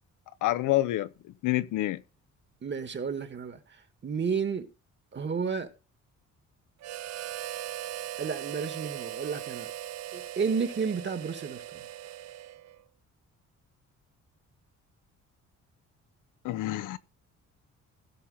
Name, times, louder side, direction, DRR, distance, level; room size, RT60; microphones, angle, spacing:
voice 1, 0.4-1.1 1.4-2.0 16.4-17.0, left 15 dB, 85° left, 0.9 m, -27 dB
voice 2, 2.6-4.7 5.1-5.7 8.2-9.7 10.1-11.9, right 5 dB, 35° right, 2.0 m, -32 dB
Harmonica, 6.8-12.8, right 13 dB, 60° right, 0.6 m, -39 dB
16.5 x 5.8 x 4.2 m
cardioid pair, 90°, 30 cm